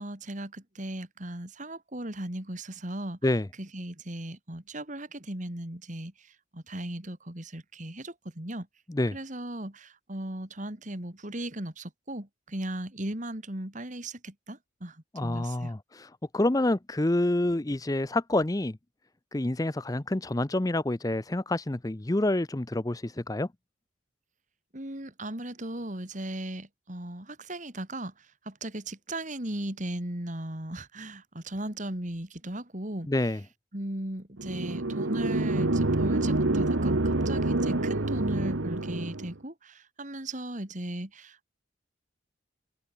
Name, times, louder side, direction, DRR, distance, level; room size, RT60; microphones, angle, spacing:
voice 1, 0.0-3.2 3.6-6.1 6.5-8.7 9.1-15.0 15.2-15.7 24.7-28.1 28.5-33.1 33.7-41.5, right 1 dB, 40° right, 2.8 m, -37 dB
voice 2, 15.1-18.8 19.3-23.5 33.1-33.4, left 1 dB, 20° left, 0.6 m, -28 dB
sound 1, 34.4-39.3, right 2 dB, 75° right, 1.4 m, -27 dB
open air
head